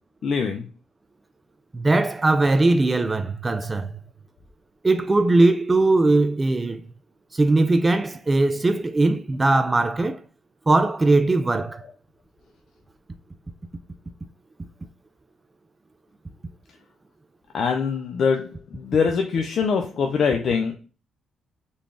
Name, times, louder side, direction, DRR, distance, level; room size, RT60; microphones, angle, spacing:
voice 1, 0.2-0.7 17.5-20.8, left 5 dB, 60° left, 0.5 m, -23 dB
voice 2, 1.7-4.0 4.8-6.8 7.3-10.2 10.7-11.8, right 2 dB, 20° right, 0.3 m, -20 dB
3.9 x 2.4 x 3.3 m
cardioid pair, 90°, 0 cm